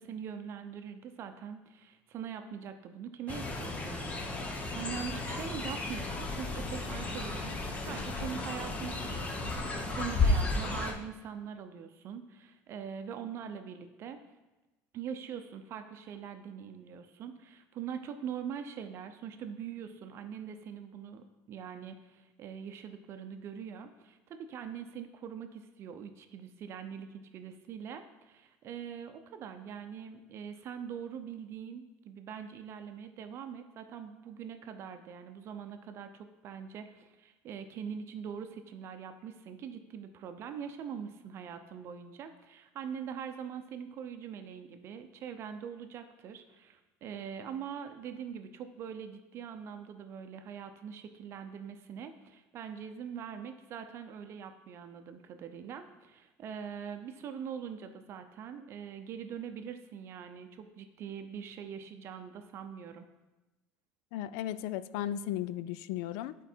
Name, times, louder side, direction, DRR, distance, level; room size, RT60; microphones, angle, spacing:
voice 1, 0.0-14.2 14.9-63.1, right 7 dB, 45° right, 7 dB, 0.6 m, -43 dB
Fowl, 3.3-10.9, left 2 dB, 25° left, 0.9 m, -33 dB
voice 2, 64.1-66.4, left 12 dB, 80° left, 15 dB, 0.3 m, -35 dB
10.5 x 4.5 x 4.4 m, 1.1 s
cardioid pair, 140°, 6 cm